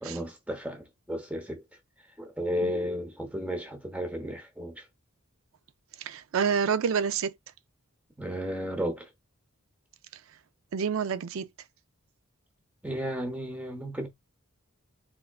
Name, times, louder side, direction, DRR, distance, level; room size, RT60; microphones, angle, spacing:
voice 1, 0.0-1.6 2.2-4.8 8.2-9.1 12.8-14.1, equal, 5° right, 0.8 m, -33 dB
voice 2, 6.0-7.3 10.7-11.5, right 6 dB, 65° right, 0.4 m, -28 dB
3.5 x 3.5 x 2.3 m
head